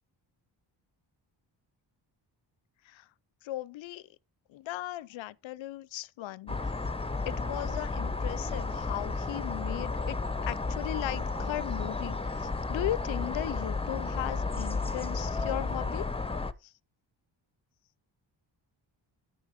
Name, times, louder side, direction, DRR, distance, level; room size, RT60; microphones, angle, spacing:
voice 1, 3.4-4.0 4.5-6.6 7.3-10.2 10.5-12.4 12.7-16.1, left 14 dB, 90° left, 0.6 m, -37 dB
sound 1, 6.5-16.5, left 3 dB, 15° left, 0.7 m, -33 dB
10.0 x 9.2 x 3.7 m
cardioid pair, 90°, 45 cm